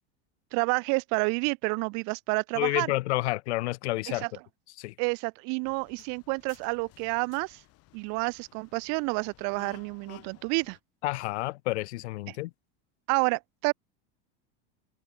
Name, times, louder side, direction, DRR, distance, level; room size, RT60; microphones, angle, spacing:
voice 1, 0.5-2.9 4.1-4.3 5.0-7.6 7.9-10.8 12.3-12.4 13.1-13.7, right 35 dB, 60° right, 1.8 m, -29 dB
voice 2, 2.6-4.2 4.8-4.9 11.0-12.5, left 19 dB, 85° left, 1.1 m, -29 dB
sound 1, 5.6-10.8, left 18 dB, 50° left, 4.7 m, -56 dB
supercardioid pair, 135°, 33 cm